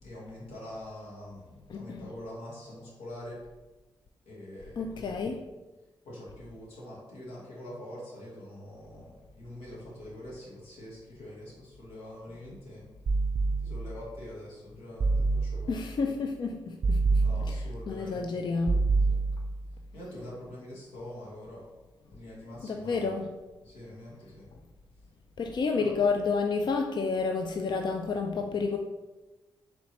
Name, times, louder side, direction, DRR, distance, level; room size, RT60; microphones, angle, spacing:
voice 1, 0.0-3.4 4.2-5.3 6.0-12.9 13.6-16.1 17.2-18.6 19.1-19.2 19.9-21.7 22.1-23.1 23.6-24.5 25.8-25.9, left 1 dB, 90° left, -5 dB, 1.2 m, -44 dB
voice 2, 1.7-2.1 4.8-5.4 15.7-17.2 17.9-18.8 22.6-23.3 25.4-28.8, left 4 dB, 50° left, 3 dB, 0.4 m, -30 dB
sound 1, 13.1-14.1 15.0-15.9 16.8-17.9 18.7-19.7, right 3 dB, 50° right, 0.4 m, -27 dB
4.4 x 3.0 x 2.9 m, 1.1 s
supercardioid pair, 45°, 10 cm